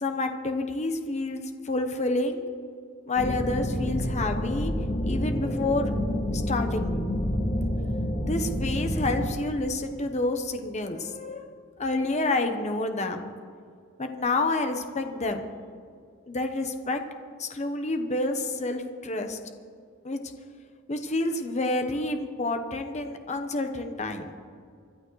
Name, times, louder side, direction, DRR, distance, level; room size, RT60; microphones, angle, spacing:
voice 1, 0.0-2.4 3.1-4.7 5.0-5.9 6.3-6.9 8.3-11.5 11.8-13.3 14.0-15.5 16.3-17.0 17.4-19.4 20.0-20.2 20.9-24.3, left 2 dB, 35° left, 6 dB, 0.9 m, -29 dB
sound 1, 3.2-9.3, equal, 50° left, 2.1 m, -28 dB
25.5 x 11.5 x 3.2 m, 2.3 s
head